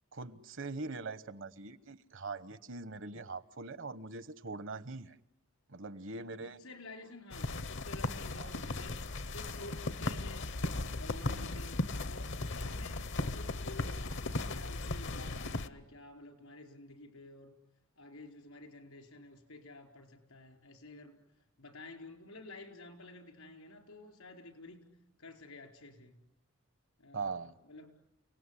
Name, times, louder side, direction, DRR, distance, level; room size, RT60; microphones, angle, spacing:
voice 1, 0.1-5.2 5.7-6.6 8.4-8.5 11.3-11.6 27.1-27.5, right 3 dB, 60° right, 14 dB, 1.1 m, -42 dB
voice 2, 6.4-9.0 9.3-10.5 11.0-17.6 18.0-21.2 21.6-24.9 25.2-26.2 27.0-27.9, left 2 dB, 80° left, 4 dB, 4.9 m, -51 dB
sound 1, 7.3-15.7, left 2 dB, 55° left, 1.0 m, -37 dB
30.0 x 19.0 x 9.9 m, 0.88 s
head